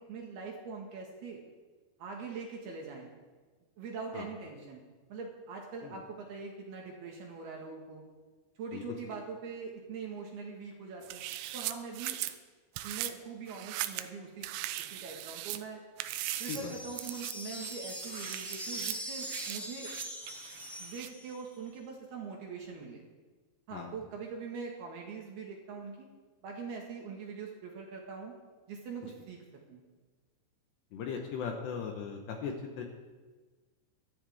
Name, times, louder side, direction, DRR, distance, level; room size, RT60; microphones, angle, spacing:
voice 1, 0.0-1.4 2.0-3.1 3.8-4.8 5.1-8.1 8.6-11.2 11.5-12.2 12.8-14.5 14.8-15.8 16.4-19.9 20.8-23.0 23.7-26.1 26.4-28.3 28.7-29.4 29.7-29.8, right 5 dB, 60° right, 0 dB, 3.3 m, -43 dB
sound 1, 11.0-12.4 12.8-13.1 13.5-14.1 14.4-15.6 16.0-16.6 17.0-17.3 17.6-21.1, right 15 dB, 85° right, 3.2 m, -39 dB
sound 2, 16.1-21.5, equal, ahead, 0.4 m, -42 dB
voice 2, 30.9-32.8, left 6 dB, 70° left, 2 dB, 2.9 m, -38 dB
22.5 x 13.0 x 3.6 m, 1.3 s
omnidirectional pair, 5.8 m